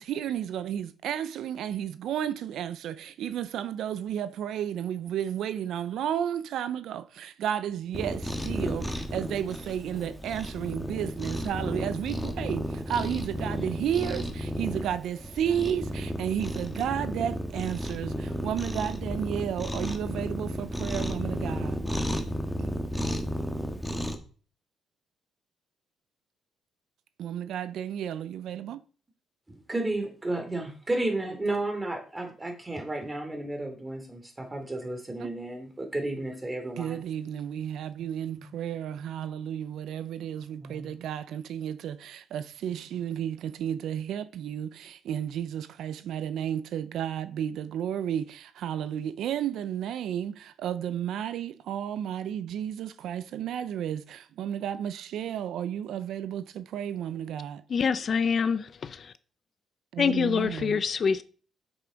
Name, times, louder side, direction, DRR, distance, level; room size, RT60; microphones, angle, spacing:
voice 1, 0.0-21.8 22.6-22.7 27.2-28.8 35.2-35.3 36.8-57.6 59.9-60.8, right 9 dB, 80° right, 0.5 m, -32 dB
Cat, 7.9-24.2, equal, 5° left, 1.5 m, -33 dB
voice 2, 29.5-37.0 38.3-38.5 40.6-40.9, right 2 dB, 20° right, 2.9 m, -33 dB
voice 3, 57.7-59.1 60.0-61.2, left 6 dB, 50° left, 0.6 m, -26 dB
8.0 x 6.9 x 5.1 m
cardioid pair, 85°, 0 cm